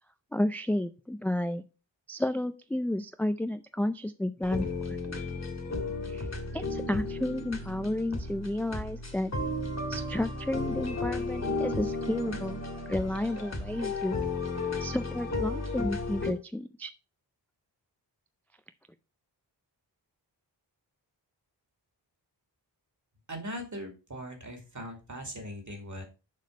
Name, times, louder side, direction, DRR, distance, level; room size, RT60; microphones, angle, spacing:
voice 1, 0.3-1.6 2.1-5.0 6.1-6.3 6.5-9.3 9.9-12.6 12.9-14.2 14.8-16.9, left 1 dB, 5° left, 10 dB, 0.3 m, -31 dB
sound 1, 4.4-16.3, left 3 dB, 35° left, 1.8 m, -34 dB
voice 2, 23.3-26.0, equal, 40° right, 4 dB, 2.3 m, -40 dB
6.8 x 5.0 x 5.1 m, 0.32 s
wide cardioid pair, 105°, 44 cm